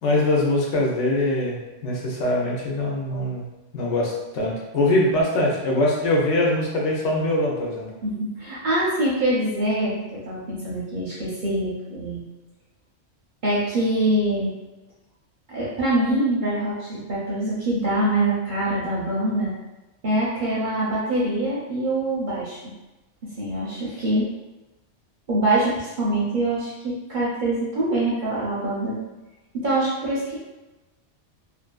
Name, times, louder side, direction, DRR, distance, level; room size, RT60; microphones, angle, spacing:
voice 1, 0.0-3.4 3.7-7.9, left 1 dB, 75° left, -3 dB, 1.0 m, -22 dB
voice 2, 8.0-12.2 13.4-14.5 15.5-19.5 20.0-22.7 23.4-24.3 25.3-29.0 29.5-30.5, right 1 dB, 50° right, -6 dB, 0.6 m, -24 dB
2.6 x 2.5 x 2.2 m, 1.0 s
omnidirectional pair, 1.3 m